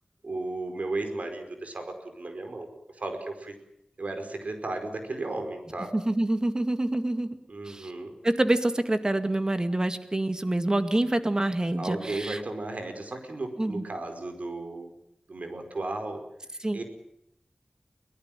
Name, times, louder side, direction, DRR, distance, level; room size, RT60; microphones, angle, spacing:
voice 1, 0.2-2.7 3.0-3.5 4.0-5.9 7.5-8.1 11.8-14.9 15.3-16.2 16.7-16.8, right 2 dB, 65° right, 6 dB, 4.9 m, -34 dB
voice 2, 5.9-7.4 7.7-7.9 8.2-12.4 13.6-13.8 16.6-16.8, right 1 dB, 30° right, 9 dB, 2.1 m, -26 dB
23.0 x 18.5 x 9.1 m, 0.77 s
wide cardioid pair, 65°, 3 cm